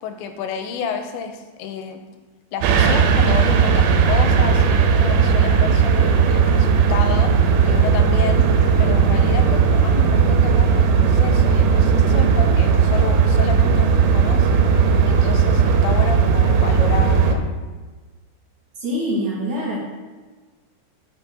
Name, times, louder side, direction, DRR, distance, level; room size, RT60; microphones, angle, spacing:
voice 1, 0.0-2.0 2.5-17.4, left 6 dB, 85° left, 6 dB, 3.0 m, -30 dB
sound 1, 2.6-17.4, right 6 dB, 90° right, 2.9 m, -16 dB
voice 2, 18.8-19.9, equal, 55° right, -4 dB, 2.8 m, -24 dB
6.3 x 6.2 x 6.7 m, 1.3 s
omnidirectional pair, 5.0 m